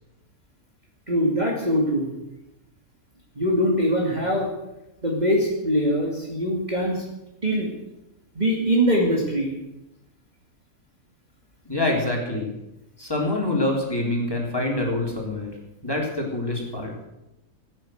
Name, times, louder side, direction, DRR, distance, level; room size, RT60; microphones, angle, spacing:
voice 1, 1.1-2.1 3.4-4.5 5.0-7.0 7.4-7.7 8.3-9.5, equal, 25° right, -2 dB, 2.6 m, -22 dB
voice 2, 11.7-12.5 13.0-15.5 15.8-16.9, left 2 dB, 15° left, -1 dB, 4.0 m, -25 dB
16.5 x 10.0 x 8.0 m, 0.91 s
omnidirectional pair, 1.6 m